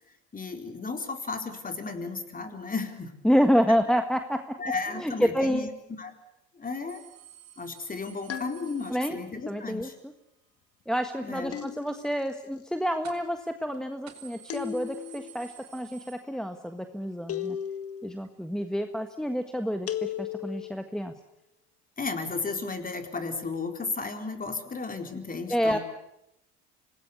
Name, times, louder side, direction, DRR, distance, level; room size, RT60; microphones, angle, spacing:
voice 1, 0.3-3.1 4.6-5.7 6.0-6.1 6.5-7.0 7.6-9.9 11.2-11.6 22.0-25.8, left 4 dB, 25° left, 6 dB, 4.2 m, -34 dB
voice 2, 3.2-4.6 4.9-5.7 8.9-9.2 9.5-9.9 10.9-17.6 18.0-21.1 25.5-25.8, equal, ahead, 7 dB, 1.5 m, -28 dB
sound 1, 6.9-9.6 13.0-13.4 13.7-13.8 14.1-16.8 17.1-17.2 18.2-18.3, right 10 dB, 50° right, 4.9 m, -52 dB
sound 2, 8.3-9.1 11.5-12.3 14.5-15.3 17.3-18.1 19.9-20.7, left 10 dB, 40° left, 1.8 m, -36 dB
26.0 x 19.5 x 8.3 m, 0.87 s
hypercardioid pair, 75°, 35 cm